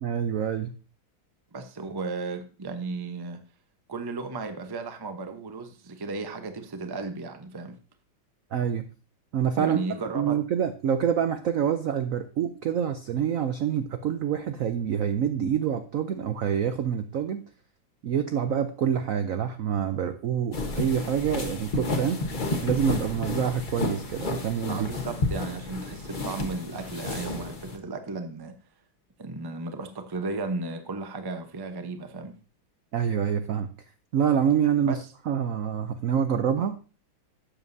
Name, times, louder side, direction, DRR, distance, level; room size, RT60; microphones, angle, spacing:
voice 1, 0.0-0.7 8.5-8.9 9.3-9.8 10.1-17.4 18.0-22.2 22.6-24.9 32.9-33.7 34.1-35.0 35.3-36.8, right 8 dB, 75° right, 9 dB, 0.7 m, -26 dB
voice 2, 1.5-3.4 3.9-7.8 9.5-10.4 24.7-28.5 29.2-32.4 34.8-35.0, right 3 dB, 30° right, 7 dB, 0.4 m, -34 dB
sound 1, 20.5-27.8, left 2 dB, 30° left, 1.1 m, -31 dB
12.5 x 8.7 x 2.7 m, 0.35 s
omnidirectional pair, 2.2 m